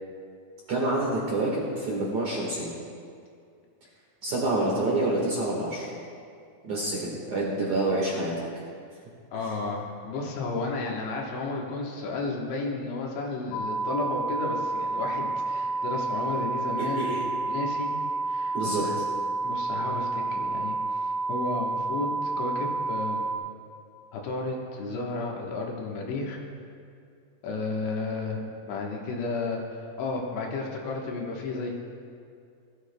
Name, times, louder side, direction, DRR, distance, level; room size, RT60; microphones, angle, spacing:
voice 1, 0.7-2.7 4.2-5.9 6.6-8.3 16.8-17.2 18.5-18.8, right 2 dB, 75° right, -4 dB, 1.6 m, -27 dB
voice 2, 9.3-17.2 17.5-17.9 18.3-19.0 19.4-23.3 24.1-26.4 27.4-31.7, left 3 dB, 70° left, -1 dB, 3.2 m, -33 dB
sound 1, 13.5-23.4, right 3 dB, 90° left, 3.9 m, -30 dB
21.5 x 13.5 x 2.2 m, 2.3 s
omnidirectional pair, 5.9 m